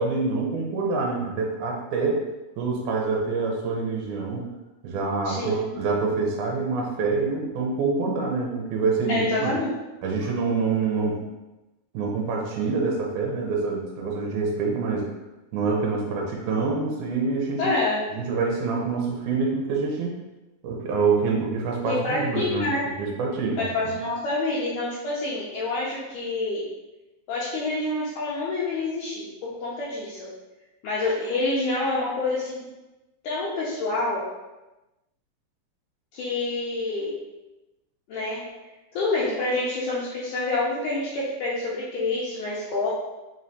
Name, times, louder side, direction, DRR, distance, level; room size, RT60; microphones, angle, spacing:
voice 1, 0.0-2.2 2.6-4.5 4.8-9.5 10.0-11.2 11.9-15.1 15.5-17.6 18.1-20.1 20.6-22.7 23.0-23.7, right 4 dB, 75° right, -1 dB, 2.0 m, -26 dB
voice 2, 5.2-5.8 9.1-9.7 17.6-18.0 21.9-22.8 23.6-26.6 27.3-30.3 30.8-32.6 33.2-34.3 36.1-37.2 38.1-38.5 38.9-42.9, left 2 dB, 80° left, -8 dB, 2.0 m, -27 dB
5.3 x 3.1 x 2.7 m, 1.0 s
omnidirectional pair, 4.1 m